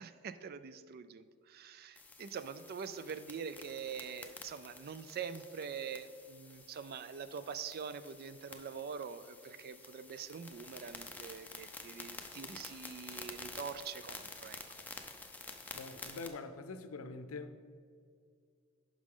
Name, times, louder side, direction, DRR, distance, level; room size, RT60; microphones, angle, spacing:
voice 1, 0.0-14.6, right 6 dB, 45° right, 0.4 m, -44 dB
sound 1, 2.0-16.3, left 3 dB, 10° left, 0.5 m, -50 dB
voice 2, 15.7-17.6, left 3 dB, 90° left, 0.6 m, -44 dB
11.5 x 5.1 x 3.7 m
head